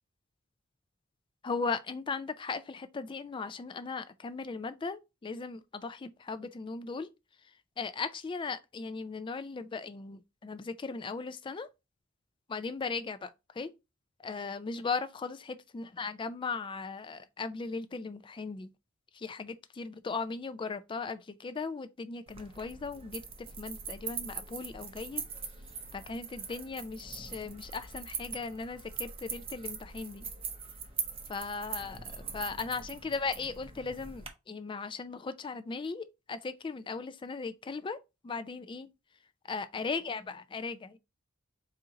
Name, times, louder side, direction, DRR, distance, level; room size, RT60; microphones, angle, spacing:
voice 1, 1.4-7.1 7.8-11.7 12.5-13.7 14.2-18.7 19.1-25.3 25.9-30.3 31.3-38.0 38.2-38.9 39.5-41.0, left 4 dB, 25° left, 0.3 m, -37 dB
sound 1, 22.3-34.3, right 6 dB, 25° right, 0.6 m, -42 dB
4.2 x 2.6 x 3.7 m
head